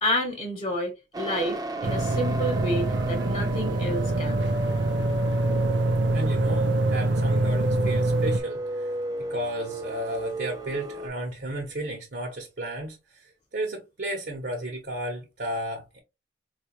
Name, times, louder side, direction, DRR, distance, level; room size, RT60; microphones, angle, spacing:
voice 1, 0.0-4.5, equal, 25° left, 1.1 m, -30 dB
sound 1, 1.1-11.1, right 2 dB, 20° right, 0.5 m, -33 dB
sound 2, 1.8-8.4, right 2 dB, 85° right, 0.6 m, -25 dB
voice 2, 6.1-8.9 9.3-16.0, right 1 dB, 60° right, 1.0 m, -33 dB
4.5 x 2.4 x 2.9 m
head